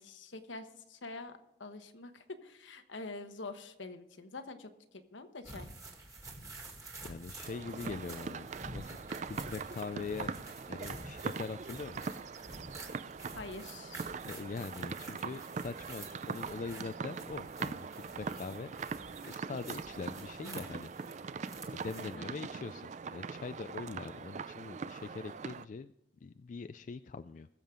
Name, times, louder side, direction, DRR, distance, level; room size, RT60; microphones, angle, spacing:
voice 1, 0.0-5.7 13.4-14.0 22.0-22.3, left 3 dB, 75° left, 8 dB, 1.1 m, -46 dB
sound 1, 5.4-22.1, right 2 dB, 15° right, 1.9 m, -49 dB
voice 2, 7.0-9.0 9.3-10.3 10.7-12.1 14.2-17.9 18.2-18.7 19.2-20.9 21.7-25.9 26.2-27.5, left 4 dB, 40° left, 11 dB, 0.3 m, -42 dB
sound 2, 7.4-25.7, right 5 dB, 40° right, 0.3 m, -42 dB
21.0 x 7.3 x 3.7 m, 0.91 s
head